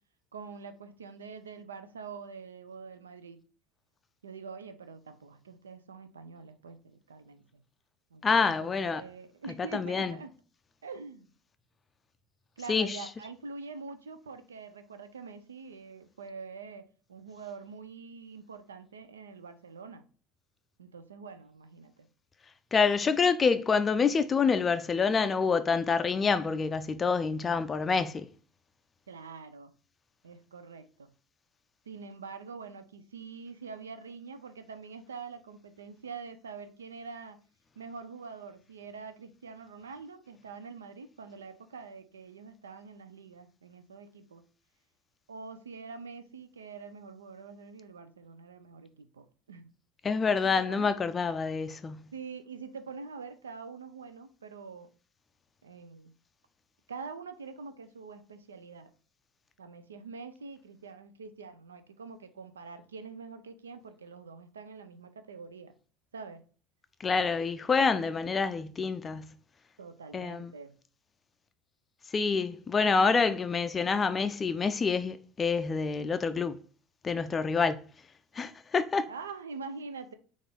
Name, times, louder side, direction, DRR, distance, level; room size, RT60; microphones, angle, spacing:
voice 1, 0.3-3.4 4.2-7.6 8.1-10.3 10.8-11.3 12.6-20.0 20.8-22.1 29.1-29.7 30.2-31.1 31.9-37.4 37.8-44.4 45.3-49.7 50.6-51.0 52.1-54.9 55.6-56.1 56.9-58.9 59.6-65.7 66.1-66.4 69.8-70.8 79.1-80.1, right 5 dB, 85° right, 0.4 m, -45 dB
voice 2, 8.2-9.0 9.7-10.2 12.7-13.1 22.7-28.3 50.0-52.1 67.0-69.4 70.1-70.5 72.1-76.6 77.0-77.9 78.3-79.1, left 5 dB, 30° left, 0.3 m, -27 dB
3.8 x 2.4 x 3.6 m
hypercardioid pair, 70°, 0 cm